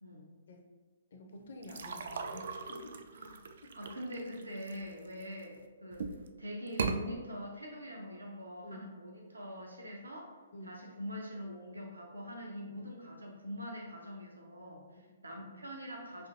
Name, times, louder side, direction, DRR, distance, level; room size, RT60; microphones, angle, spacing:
voice 1, 0.0-0.3 3.1-3.4 3.7-6.1 6.4-10.4 10.6-16.3, equal, 80° right, 0 dB, 0.7 m, -44 dB
voice 2, 1.1-3.0 3.6-3.8 8.6-8.9 10.5-10.8 15.0-15.2, left 1 dB, 55° left, 3 dB, 0.6 m, -50 dB
sound 1, 1.6-5.4 5.9-6.3 6.7-7.0, right 5 dB, 55° right, 0.3 m, -39 dB
5.6 x 2.6 x 2.8 m, 1.3 s
figure-of-eight pair, 125°, 0 cm